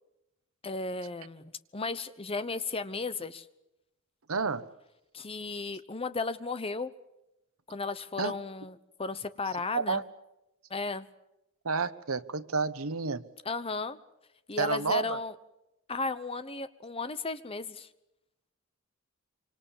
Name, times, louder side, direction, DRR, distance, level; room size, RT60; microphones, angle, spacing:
voice 1, 0.6-3.4 5.1-6.9 7.7-10.0 10.7-11.1 13.4-14.0 14.5-15.3 15.9-17.9, left 3 dB, 25° left, 1.0 m, -34 dB
voice 2, 4.3-4.7 8.2-8.3 9.7-10.0 11.6-13.2 14.6-15.2, right 4 dB, 85° right, 1.1 m, -30 dB
26.0 x 25.5 x 7.3 m
head